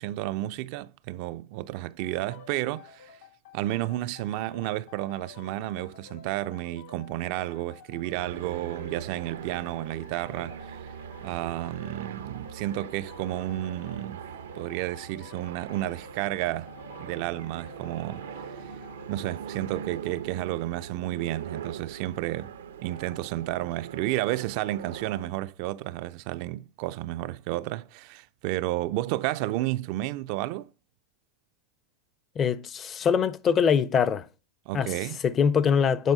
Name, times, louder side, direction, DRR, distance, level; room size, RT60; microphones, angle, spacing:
voice 1, 0.0-3.2 3.5-10.8 11.2-14.2 14.5-16.7 17.0-18.3 19.1-22.5 22.8-30.7 34.7-35.2, right 16 dB, 50° right, 0.3 m, -31 dB
sound 1, 2.0-19.4, left 7 dB, 65° left, 1.7 m, -50 dB
sound 2, 8.1-25.3, right 8 dB, 85° right, 0.6 m, -41 dB
voice 2, 32.4-34.3 34.7-34.9 35.2-36.1, left 7 dB, 25° left, 0.5 m, -23 dB
8.2 x 4.0 x 3.9 m
hypercardioid pair, 130°, 0 cm